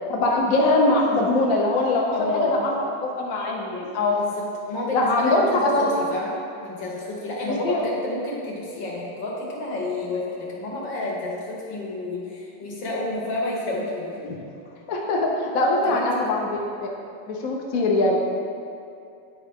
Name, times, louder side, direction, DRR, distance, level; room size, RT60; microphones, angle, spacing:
voice 1, 0.1-2.7 3.0-4.2 4.9-5.9 7.6-7.8 14.2-14.3 14.9-16.6 17.3-18.2, left 2 dB, 60° left, -2 dB, 1.0 m, -22 dB
voice 2, 2.1-2.6 4.1-6.4 6.6-14.3 15.8-16.2 17.7-17.8, left 2 dB, 75° left, -4 dB, 1.9 m, -30 dB
9.5 x 4.5 x 3.5 m, 2.5 s
omnidirectional pair, 2.0 m